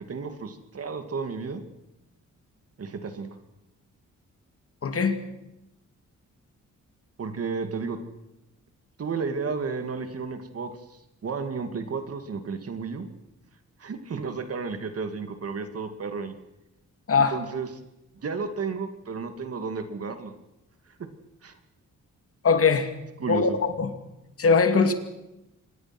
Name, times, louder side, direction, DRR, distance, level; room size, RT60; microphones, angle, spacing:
voice 1, 0.1-1.6 2.8-3.3 7.2-8.0 9.0-10.7 11.2-13.1 13.8-16.4 17.2-17.7 18.2-20.3 21.4-21.5 23.2-23.6, right 5 dB, 50° right, 8 dB, 2.5 m, -32 dB
voice 2, 4.8-5.2 17.1-17.4 22.4-22.9 23.3-23.9 24.4-24.9, left 5 dB, 50° left, 8 dB, 2.5 m, -21 dB
26.0 x 20.5 x 6.2 m, 0.92 s
cardioid pair, 115°, 30 cm